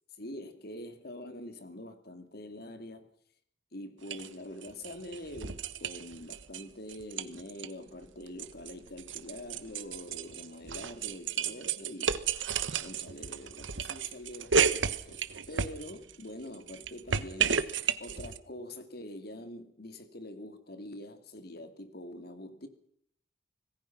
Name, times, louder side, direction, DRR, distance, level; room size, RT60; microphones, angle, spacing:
voice 1, 0.2-3.1 3.7-12.2 12.8-22.7, left 1 dB, 55° left, 2.4 m, -45 dB
sound 1, 4.1-4.3 4.6-6.6 6.9-7.7 8.0-16.2 16.5-18.4, right 6 dB, 75° right, 1.2 m, -32 dB
26.0 x 19.0 x 5.9 m
head